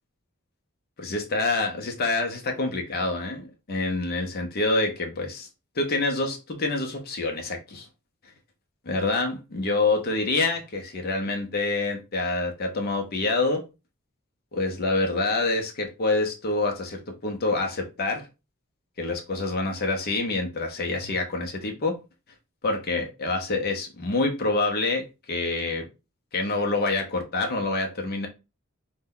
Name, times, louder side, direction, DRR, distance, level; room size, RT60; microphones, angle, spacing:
voice 1, 1.0-5.5 5.8-7.9 8.9-13.7 14.5-18.3 19.0-22.0 22.6-25.9 26.3-28.3, left 3 dB, 45° left, 0.6 m, -27 dB
2.6 x 2.1 x 3.6 m
head